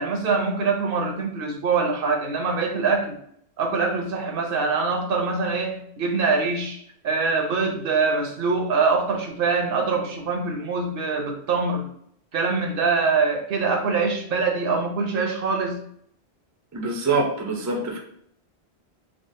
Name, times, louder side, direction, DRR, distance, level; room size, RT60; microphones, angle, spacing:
voice 1, 0.0-3.1 3.6-11.8 12.3-15.8, right 4 dB, 65° right, 2 dB, 0.8 m, -24 dB
voice 2, 16.7-18.0, right 3 dB, 30° right, 1 dB, 0.3 m, -25 dB
3.6 x 2.0 x 2.5 m, 0.68 s
omnidirectional pair, 1.1 m